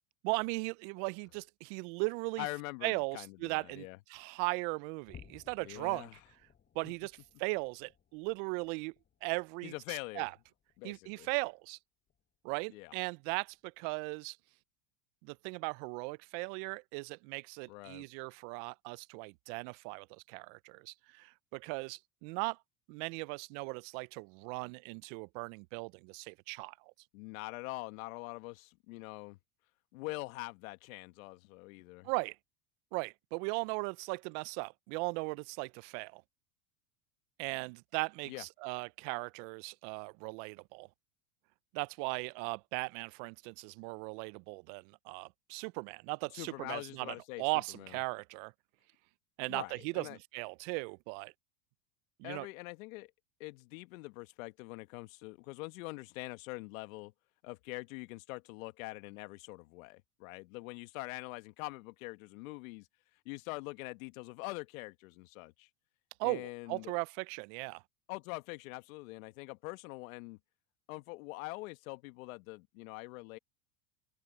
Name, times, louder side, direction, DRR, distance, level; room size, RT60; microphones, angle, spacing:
voice 1, 0.2-2.5 2.8-6.1 6.7-8.9 9.2-10.3 10.8-11.8 12.4-14.4 15.2-22.6 22.9-26.7 32.0-32.4 32.9-36.2 37.4-40.9 41.7-48.5 49.4-51.3 52.2-52.5 66.2-67.8, right 30 dB, 55° right, 0.7 m, -38 dB
voice 2, 2.4-4.0 5.6-6.2 6.8-6.9 9.6-10.3 10.8-11.3 12.7-12.9 17.7-18.1 27.1-29.4 29.9-32.1 38.3-38.4 46.3-47.4 47.7-47.9 49.5-50.2 52.2-53.1 53.4-57.1 57.4-62.9 63.3-65.7 66.2-66.9 68.1-70.4 70.9-73.4, left 23 dB, 65° left, 1.8 m, -44 dB
sound 1, 5.0-11.7 12.1-12.4 12.8-12.9 13.5-13.6, left 8 dB, 25° left, 1.4 m, -61 dB
open air
hypercardioid pair, 100°, 43 cm